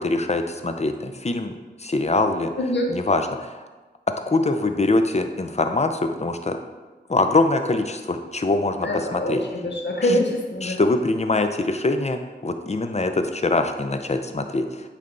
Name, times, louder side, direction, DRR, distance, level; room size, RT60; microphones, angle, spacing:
voice 1, 0.0-2.5 2.9-3.6 4.3-6.6 7.1-9.4 10.6-14.9, left 2 dB, 35° left, 7 dB, 0.6 m, -23 dB
voice 2, 2.6-2.9 8.8-10.8, left 1 dB, 75° left, 1 dB, 0.8 m, -24 dB
8.5 x 3.4 x 3.9 m, 1.3 s
wide cardioid pair, 40°, 19 cm